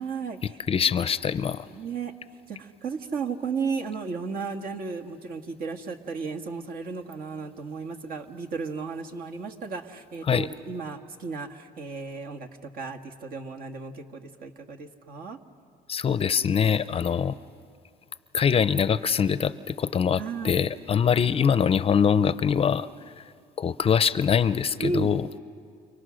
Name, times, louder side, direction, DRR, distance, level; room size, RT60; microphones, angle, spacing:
voice 1, 0.0-0.6 1.7-2.1 2.5-15.4 20.2-20.6 24.8-25.2, right 5 dB, 60° right, 4 dB, 1.8 m, -34 dB
voice 2, 0.7-1.7 10.2-10.5 15.9-17.4 18.3-22.9 23.2-23.3 23.6-25.3, left 7 dB, 35° left, 15 dB, 0.6 m, -23 dB
29.5 x 29.0 x 6.4 m, 2.3 s
cardioid pair, 110°, 17 cm